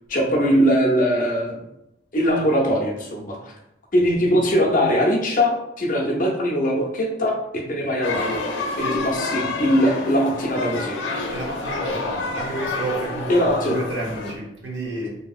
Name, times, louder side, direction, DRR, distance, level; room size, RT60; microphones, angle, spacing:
voice 1, 0.1-1.6 2.1-3.5 3.9-8.4 8.9-11.0 13.3-13.8, equal, 45° left, -1 dB, 0.6 m, -21 dB
sound 1, 8.0-14.3, left 3 dB, 90° left, 0.5 m, -29 dB
voice 2, 11.3-15.2, right 1 dB, 65° right, -2 dB, 0.8 m, -30 dB
2.8 x 2.6 x 2.4 m, 0.87 s
head